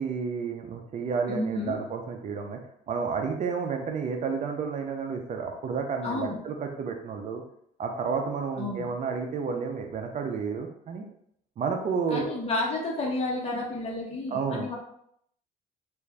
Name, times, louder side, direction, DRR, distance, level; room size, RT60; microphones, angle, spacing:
voice 1, 0.0-2.6 2.9-7.4 7.8-11.0 11.6-12.3 14.3-14.7, right 5 dB, 45° right, 4 dB, 0.5 m, -31 dB
voice 2, 1.3-1.8 6.0-6.4 8.6-8.9 12.1-14.7, left 2 dB, 35° left, -2 dB, 1.1 m, -31 dB
3.4 x 2.6 x 3.3 m, 0.69 s
cardioid pair, 110°, 17 cm